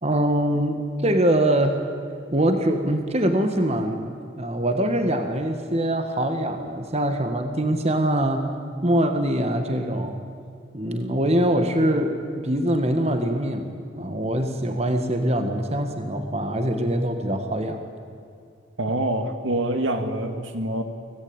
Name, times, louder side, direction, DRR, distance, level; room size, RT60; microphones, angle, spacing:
voice 1, 0.0-1.8 2.3-4.1 4.4-8.4 8.8-10.1 10.7-13.6 14.0-17.8, right 1 dB, 30° right, 6 dB, 1.6 m, -23 dB
voice 2, 18.8-20.8, right 1 dB, 70° right, 7 dB, 2.0 m, -25 dB
25.5 x 17.5 x 8.8 m, 2.5 s
head